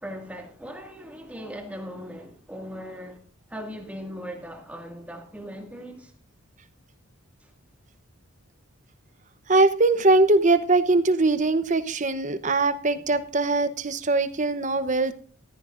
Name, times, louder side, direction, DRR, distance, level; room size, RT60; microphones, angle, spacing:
voice 1, 0.0-3.2 3.5-6.1 7.4-7.5, equal, 5° right, 2.0 m, -39 dB
voice 2, 9.5-15.1, right 2 dB, 35° right, 0.8 m, -21 dB
15.0 x 14.5 x 2.5 m
head